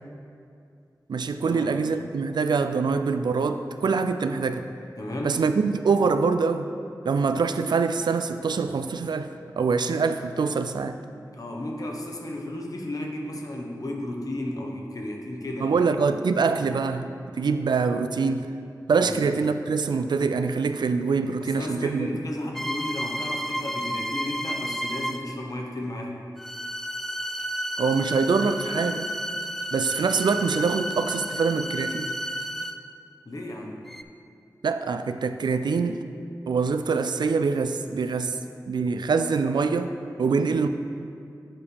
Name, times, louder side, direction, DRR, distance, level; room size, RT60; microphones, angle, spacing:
voice 1, 1.1-4.7 5.2-6.7 7.1-11.0 15.6-17.1 17.3-18.5 18.9-22.1 27.8-29.1 29.7-32.1 34.6-36.0 36.5-38.4 38.7-40.7, right 5 dB, 85° right, 9 dB, 0.3 m, -24 dB
voice 2, 5.0-5.4 11.3-15.8 19.0-19.2 21.4-26.2 33.2-33.8, left 1 dB, 55° left, 0 dB, 1.0 m, -33 dB
sound 1, 22.5-25.4 26.4-33.0 33.9-34.0, equal, 5° left, 0.3 m, -32 dB
7.4 x 4.8 x 5.2 m, 2.5 s
wide cardioid pair, 60°, 7 cm